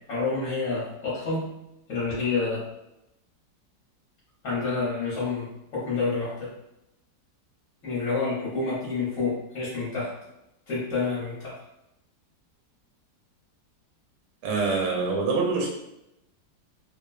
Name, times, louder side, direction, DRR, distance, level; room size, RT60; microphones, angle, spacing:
voice 1, 0.0-1.5 1.9-2.7 4.4-6.5 7.8-10.1 10.7-11.6, left 3 dB, 55° left, -8 dB, 1.1 m, -28 dB
voice 2, 14.4-15.7, right 4 dB, 80° right, -1 dB, 1.2 m, -25 dB
3.0 x 2.1 x 2.3 m, 0.86 s
omnidirectional pair, 2.0 m